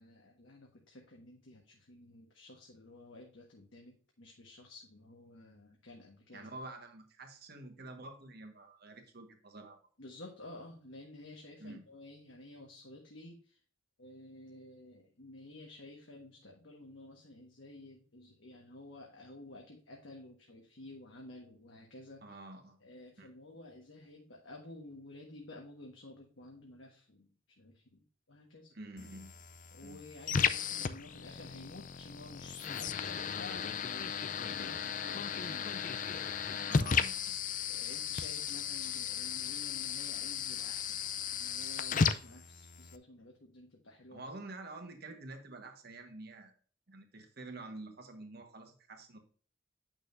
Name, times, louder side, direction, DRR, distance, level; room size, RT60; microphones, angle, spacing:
voice 1, 0.0-6.5 10.0-13.6 14.0-22.2 22.8-28.7 29.7-35.7 37.6-41.0 41.3-44.2, left 2 dB, 70° left, 0 dB, 1.4 m, -52 dB
voice 2, 6.3-9.8 11.6-11.8 22.2-22.8 23.2-23.3 28.7-29.3 29.8-30.0 36.7-37.3 44.1-46.5 46.9-49.2, right 2 dB, 55° right, 5 dB, 1.4 m, -48 dB
sound 1, 29.0-43.0, left 6 dB, 40° left, 0.4 m, -35 dB
8.7 x 6.2 x 2.6 m, 0.44 s
head